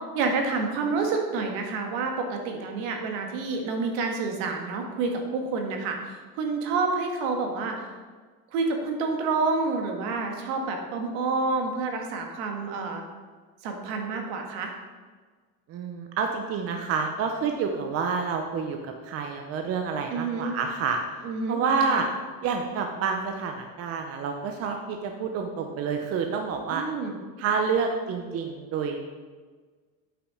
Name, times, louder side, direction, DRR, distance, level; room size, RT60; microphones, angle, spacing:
voice 1, 0.0-7.9 8.5-13.0 13.6-14.7 20.1-20.5 21.2-21.6 21.9-22.0 26.7-27.1, right 4 dB, 65° right, 3 dB, 1.8 m, -28 dB
voice 2, 15.7-21.0 21.5-22.1 22.4-26.9 27.4-29.0, right 5 dB, 35° right, 4 dB, 0.8 m, -28 dB
8.7 x 5.9 x 5.0 m, 1.5 s
supercardioid pair, 135°, 41 cm